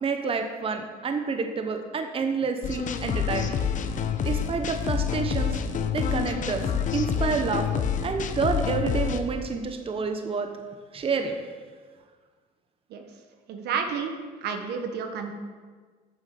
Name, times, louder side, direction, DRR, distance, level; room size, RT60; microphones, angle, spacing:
voice 1, 0.0-3.5 4.2-5.6 5.9-6.6 6.9-10.5 10.9-11.4, right 5 dB, 35° right, 6 dB, 1.0 m, -28 dB
sound 1, 2.6-9.2, left 7 dB, 50° left, 0.9 m, -27 dB
voice 2, 13.5-14.1 14.4-15.3, right 6 dB, 75° right, 5 dB, 1.4 m, -30 dB
9.0 x 7.1 x 6.9 m, 1.5 s
cardioid pair, 110°, 17 cm